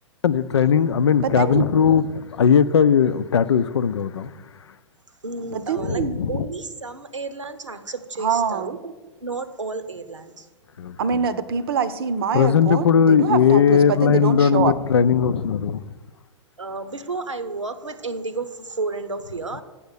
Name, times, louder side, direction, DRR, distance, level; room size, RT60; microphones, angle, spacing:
voice 1, 0.2-4.3 5.9-6.4 10.8-11.2 12.3-15.9, left 7 dB, 65° left, 0.5 m, -18 dB
voice 2, 1.2-1.7 5.5-6.2 8.2-8.7 11.0-14.7, right 6 dB, 50° right, 0.7 m, -24 dB
voice 3, 5.2-8.9 9.2-10.5 16.6-19.6, right 3 dB, 80° right, 0.9 m, -32 dB
7.9 x 7.0 x 8.2 m
figure-of-eight pair, 105°, 16 cm